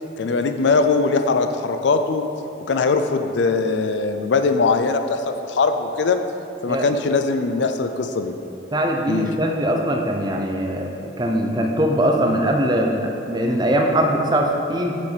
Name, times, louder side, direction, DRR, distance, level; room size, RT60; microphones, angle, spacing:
voice 1, 0.2-2.3 2.7-6.2 6.6-8.3 9.1-9.4, left 4 dB, 70° left, 8 dB, 0.4 m, -21 dB
voice 2, 8.7-10.9 11.2-15.0, right 1 dB, 20° right, 2 dB, 0.6 m, -21 dB
6.7 x 5.1 x 4.9 m, 2.9 s
head